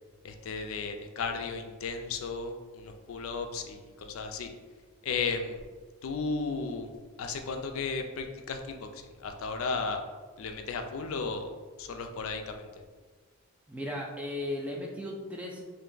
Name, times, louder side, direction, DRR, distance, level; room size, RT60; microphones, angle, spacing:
voice 1, 0.2-4.5 5.0-5.6 6.0-6.9 7.2-10.0 10.4-11.5 11.8-12.7, left 4 dB, 70° left, 5 dB, 0.4 m, -34 dB
voice 2, 13.7-15.6, left 1 dB, 5° right, -1 dB, 0.4 m, -36 dB
3.3 x 2.6 x 3.8 m, 1.4 s
head